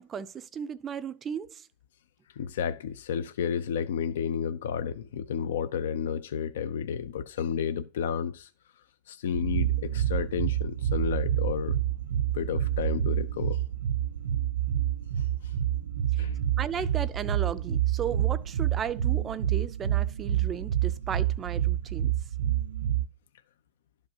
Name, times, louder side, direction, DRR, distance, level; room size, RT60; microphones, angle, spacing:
voice 1, 0.0-1.7 16.1-16.2 16.6-22.1, right 8 dB, 20° right, 0.4 m, -35 dB
voice 2, 2.4-8.5 9.1-11.8 12.3-13.6 15.2-15.5 16.2-16.4 16.8-16.9, left 7 dB, 75° left, 0.5 m, -31 dB
sound 1, 9.3-23.0, right 11 dB, 85° right, 0.4 m, -28 dB
11.5 x 5.2 x 2.8 m
supercardioid pair, 150°, 0 cm